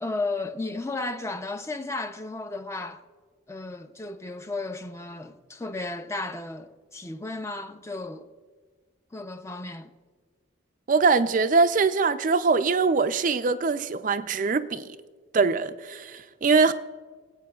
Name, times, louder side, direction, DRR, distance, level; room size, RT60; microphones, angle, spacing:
voice 1, 0.0-3.0 3.5-8.3 9.1-9.9, left 2 dB, 15° left, 0.5 m, -34 dB
voice 2, 10.9-14.9 15.3-16.7, right 4 dB, 40° right, 0.4 m, -22 dB
26.0 x 8.7 x 2.3 m
head